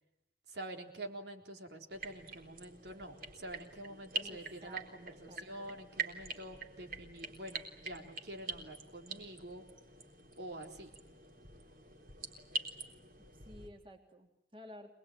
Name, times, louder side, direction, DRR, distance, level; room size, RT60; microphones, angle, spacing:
voice 1, 0.5-9.6 10.4-10.9, right 1 dB, 75° right, 3 dB, 3.8 m, -47 dB
sound 1, 1.9-13.7, right 3 dB, 55° right, 3.7 m, -45 dB
voice 2, 4.2-5.8 13.3-14.9, equal, 30° right, 3 dB, 3.0 m, -54 dB
26.5 x 20.5 x 9.3 m, 0.86 s
head